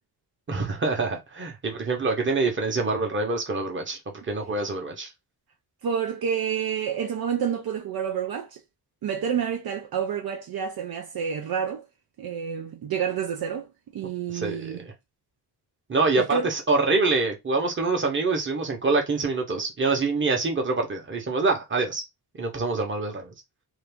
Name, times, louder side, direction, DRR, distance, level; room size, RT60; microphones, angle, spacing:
voice 1, 0.5-5.1 14.3-14.9 15.9-22.0 22.4-23.3, right 3 dB, 30° right, 1.0 m, -25 dB
voice 2, 5.8-8.6 9.0-11.9 12.2-14.8 16.2-16.5, right 7 dB, 60° right, 0.5 m, -29 dB
2.8 x 2.5 x 3.5 m
wide cardioid pair, 150°, 41 cm